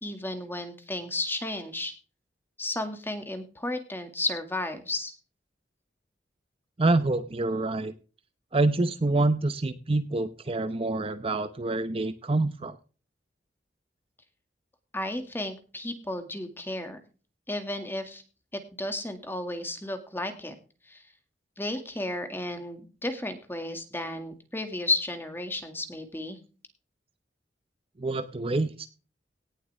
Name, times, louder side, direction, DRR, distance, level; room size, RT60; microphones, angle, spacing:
voice 1, 0.0-1.9 2.6-5.2 14.9-17.0 17.5-18.2 18.8-20.6 20.9-21.0 21.6-26.4, left 2 dB, 15° left, 7 dB, 2.0 m, -33 dB
voice 2, 6.8-7.9 8.5-12.8 28.0-28.9, right 2 dB, 30° right, 11 dB, 0.7 m, -26 dB
17.5 x 7.9 x 3.4 m, 0.35 s
head